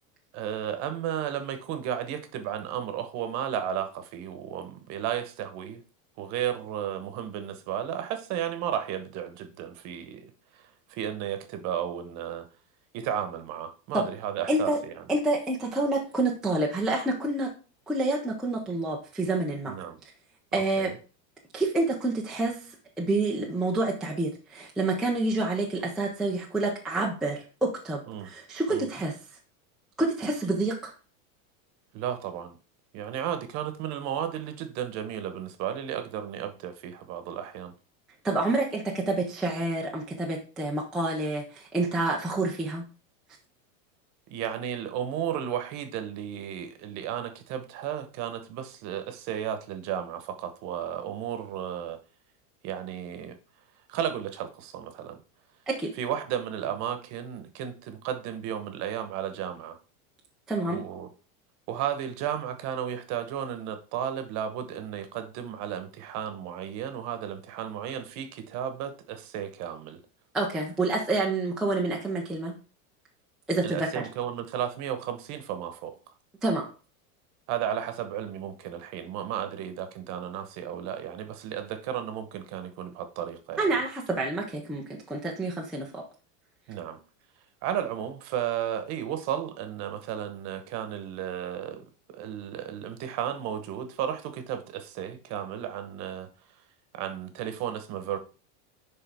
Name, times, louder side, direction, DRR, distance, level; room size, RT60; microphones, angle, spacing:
voice 1, 0.3-5.8 6.2-12.5 12.9-15.0 19.7-20.0 20.5-20.9 28.1-28.3 28.7-28.8 31.9-32.6 32.9-37.7 44.3-52.0 52.6-53.4 53.9-55.2 56.0-59.8 60.7-61.1 61.7-70.0 73.6-76.0 77.5-83.6 86.7-87.0 87.6-96.3 96.9-98.2, right 9 dB, 40° right, 1.0 m, -33 dB
voice 2, 14.5-14.8 15.1-17.5 17.9-19.8 20.5-20.9 21.5-22.6 23.0-29.2 30.0-30.9 38.2-42.8 55.7-55.9 60.5-60.8 70.3-72.5 73.5-74.1 76.4-76.7 83.6-86.0, right 2 dB, ahead, 0.3 m, -28 dB
10.0 x 3.6 x 3.5 m
supercardioid pair, 155°, 43 cm